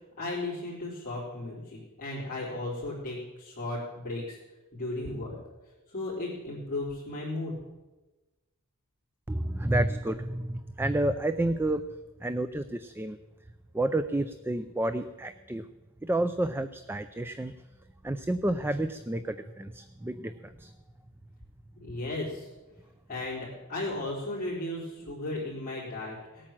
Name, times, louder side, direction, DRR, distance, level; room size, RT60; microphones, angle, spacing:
voice 1, 0.2-4.4 4.7-5.3 5.9-7.5 21.7-22.5 23.1-26.5, left 2 dB, 40° left, -9 dB, 3.9 m, -35 dB
voice 2, 9.3-11.8 12.2-13.2 13.7-15.7 16.0-17.5 18.0-20.7, right 1 dB, 10° right, 11 dB, 0.4 m, -30 dB
18.5 x 8.9 x 7.4 m, 1.2 s
head